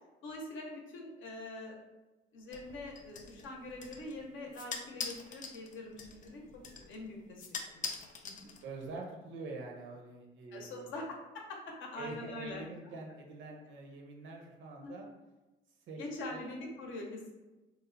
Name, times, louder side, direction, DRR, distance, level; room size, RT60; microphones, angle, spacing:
voice 1, 0.2-1.7 2.3-6.4 6.7-7.4 7.7-8.5 10.5-11.1 11.5-12.6 14.8-15.0 16.0-17.3, left 2 dB, 75° left, 0 dB, 0.6 m, -44 dB
sound 1, 2.5-9.0, left 5 dB, 40° left, 0.4 m, -45 dB
voice 2, 8.6-11.0 12.0-15.1 15.9-16.5, right 3 dB, 75° right, 1 dB, 0.6 m, -45 dB
3.0 x 2.1 x 2.5 m, 1.1 s
cardioid pair, 90°, 20 cm